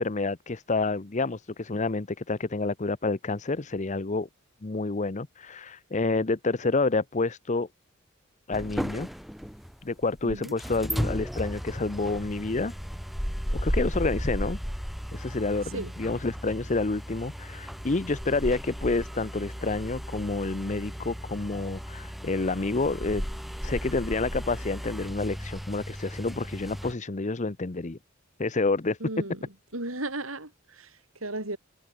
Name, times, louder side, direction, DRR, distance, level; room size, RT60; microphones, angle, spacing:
voice 1, 0.0-4.3 4.6-7.7 8.5-9.1 9.8-12.7 13.5-14.6 15.1-23.2 23.6-28.0 28.4-29.0, left 3 dB, 35° left, 0.8 m, -29 dB
sound 1, 8.5-26.9, equal, ahead, 4.8 m, -35 dB
voice 2, 10.2-10.5 15.7-15.9 29.0-29.4 29.7-30.9 31.2-31.6, right 2 dB, 90° right, 7.5 m, -34 dB
head